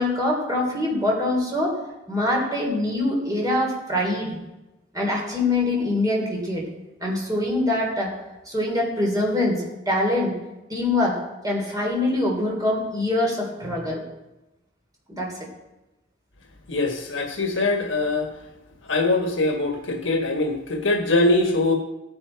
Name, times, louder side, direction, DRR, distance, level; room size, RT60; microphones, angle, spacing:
voice 1, 0.0-1.7 2.1-4.4 4.9-6.7 7.0-8.1 8.4-10.3 10.7-11.2 11.4-14.0 15.1-15.3, left 1 dB, 20° right, -2 dB, 3.4 m, -24 dB
voice 2, 16.7-18.3 18.9-21.7, left 2 dB, 75° left, 3 dB, 1.4 m, -22 dB
15.0 x 9.9 x 4.6 m, 1.0 s
head